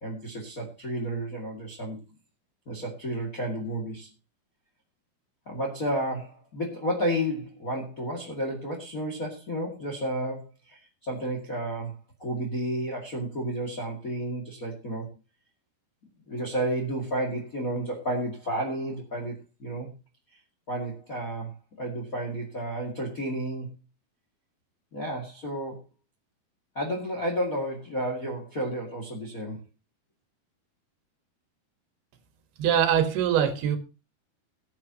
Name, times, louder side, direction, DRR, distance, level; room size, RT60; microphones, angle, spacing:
voice 1, 0.0-2.0 2.7-4.1 5.5-15.1 16.3-19.9 20.7-23.7 24.9-25.8 26.7-29.6, right 1 dB, 30° left, 1 dB, 2.0 m, -32 dB
voice 2, 32.6-33.8, right 9 dB, 90° right, 9 dB, 3.5 m, -23 dB
19.5 x 8.9 x 2.9 m, 0.29 s
omnidirectional pair, 4.4 m